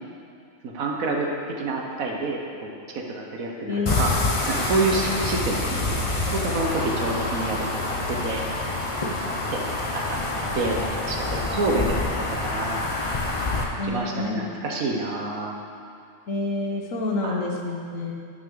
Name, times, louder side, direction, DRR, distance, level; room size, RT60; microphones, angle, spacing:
voice 1, 0.6-4.1 4.5-8.4 9.5-9.6 9.9-10.2 10.5-12.7 13.8-15.6 17.2-17.4, right 3 dB, 85° right, 0 dB, 1.6 m, -28 dB
voice 2, 3.6-4.0 13.8-14.5 16.3-18.1, left 2 dB, 75° left, 0 dB, 1.5 m, -28 dB
sound 1, 3.9-13.6, left 2 dB, 30° left, 0.8 m, -27 dB
11.5 x 6.6 x 3.9 m, 2.4 s
omnidirectional pair, 1.4 m